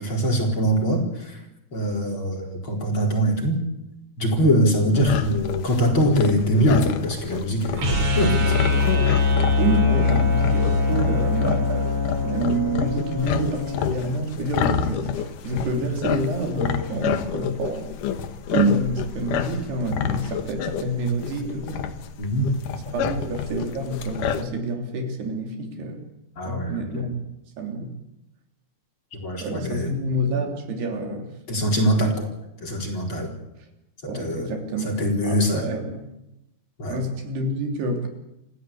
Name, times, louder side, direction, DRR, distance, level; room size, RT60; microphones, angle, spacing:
voice 1, 0.0-1.4 1.7-3.6 4.2-8.5 22.2-22.4 26.4-27.0 29.1-29.9 31.5-32.3 32.6-33.3 34.1-34.5 34.8-35.6 36.8-37.0, equal, 30° left, 1 dB, 4.7 m, -23 dB
sound 1, 5.0-24.4, left 8 dB, 65° left, 2.4 m, -29 dB
sound 2, 7.8-13.9, left 3 dB, 40° right, 4.1 m, -22 dB
voice 2, 9.6-12.0 12.2-18.0 18.5-21.9 22.9-26.0 26.4-27.2 27.6-27.9 29.4-31.3 34.1-36.1 36.9-38.1, right 2 dB, 70° right, 3 dB, 5.2 m, -27 dB
28.5 x 16.0 x 8.5 m, 0.89 s
omnidirectional pair, 5.0 m